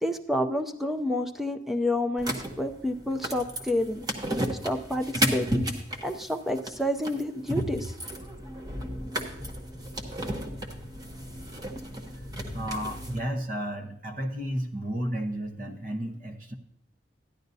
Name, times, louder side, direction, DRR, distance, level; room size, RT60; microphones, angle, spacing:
voice 1, 0.0-4.0 4.6-5.7 6.0-7.9, left 1 dB, ahead, 6 dB, 0.5 m, -29 dB
sound 1, 2.2-13.2, equal, 20° right, 0.9 m, -33 dB
voice 2, 12.5-16.5, equal, 50° right, 5 dB, 0.9 m, -33 dB
13.5 x 10.5 x 2.7 m, 0.77 s
head